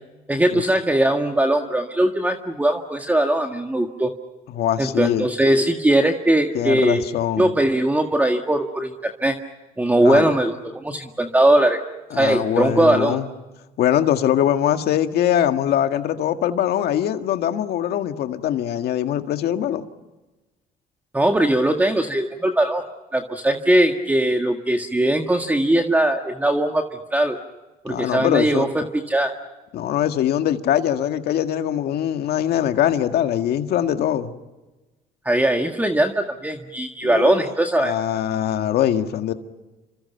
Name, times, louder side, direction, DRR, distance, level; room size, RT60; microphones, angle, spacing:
voice 1, 0.3-4.1 4.8-7.0 7.4-9.4 9.8-11.8 12.1-13.2 21.1-22.8 23.1-26.8 27.1-27.4 27.8-29.3 35.3-38.0, right 1 dB, 10° right, 4 dB, 1.8 m, -20 dB
voice 2, 4.5-5.3 6.5-7.5 10.0-10.3 12.1-13.3 13.8-19.9 27.9-28.7 29.7-34.3 37.0-37.4 37.8-39.3, left 10 dB, 70° left, 7 dB, 1.8 m, -22 dB
29.5 x 26.0 x 5.7 m, 1.1 s
cardioid pair, 110°, 17 cm